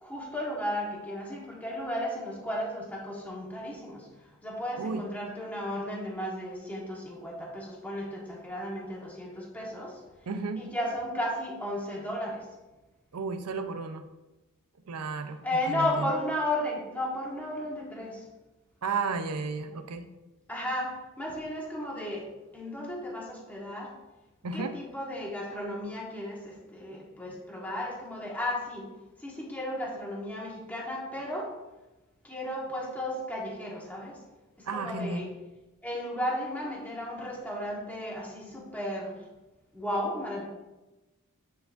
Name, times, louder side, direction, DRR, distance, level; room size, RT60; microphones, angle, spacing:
voice 1, 0.0-4.1 4.4-10.0 10.5-12.5 15.4-18.3 20.5-22.3 22.5-23.9 24.5-28.9 29.2-31.5 32.2-34.2 34.6-35.3 35.8-39.2 39.7-40.4, left 1 dB, 5° left, -3 dB, 1.3 m, -34 dB
voice 2, 10.3-10.6 13.1-14.1 14.8-16.1 18.8-20.1 24.4-24.8 27.3-27.4 34.7-35.3, right 4 dB, 90° right, 8 dB, 0.6 m, -33 dB
9.2 x 4.8 x 2.5 m, 1.1 s
head